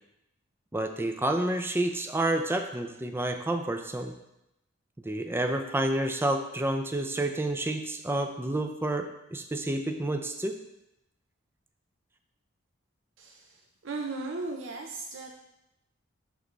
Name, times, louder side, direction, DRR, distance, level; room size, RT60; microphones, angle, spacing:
voice 1, 0.7-4.1 5.0-10.6, right 1 dB, 10° right, 6 dB, 0.4 m, -29 dB
voice 2, 13.2-15.3, right 3 dB, 65° right, 1 dB, 0.7 m, -37 dB
11.0 x 3.9 x 3.3 m, 0.87 s
head